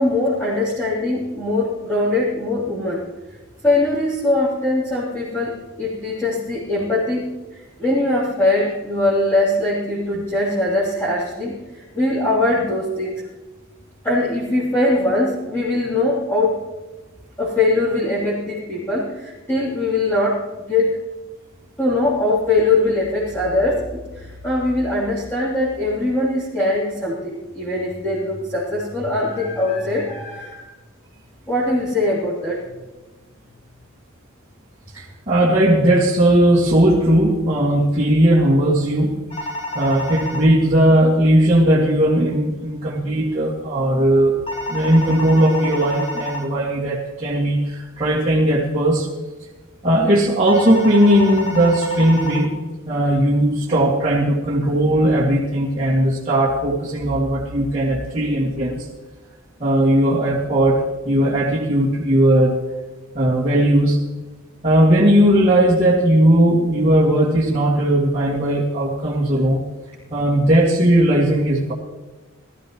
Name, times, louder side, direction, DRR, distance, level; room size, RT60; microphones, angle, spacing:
voice 1, 0.0-3.0 3.6-13.2 14.0-16.6 17.4-20.4 20.7-21.0 21.8-30.6 31.5-32.8, left 2 dB, 10° left, -10 dB, 3.3 m, -21 dB
voice 2, 34.9-39.2 39.7-44.4 44.7-49.1 49.8-52.5 52.9-58.9 59.6-62.6 63.1-64.0 64.6-69.6 70.1-71.7, right 1 dB, 30° right, -9 dB, 2.3 m, -17 dB
sound 1, 39.3-40.5 44.5-46.5 50.5-52.5, equal, 25° left, 1.4 m, -29 dB
20.0 x 14.0 x 3.1 m, 1.2 s
head